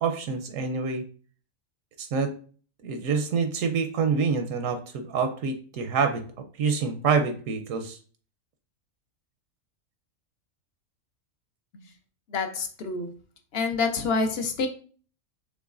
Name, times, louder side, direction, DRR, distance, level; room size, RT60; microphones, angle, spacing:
voice 1, 0.0-1.0 2.0-2.3 2.8-6.2 6.6-8.0, right 5 dB, 80° right, 7 dB, 1.0 m, -26 dB
voice 2, 12.3-13.1 13.5-14.7, left 4 dB, 60° left, 6 dB, 0.8 m, -27 dB
6.1 x 3.1 x 2.4 m, 0.41 s
omnidirectional pair, 1.4 m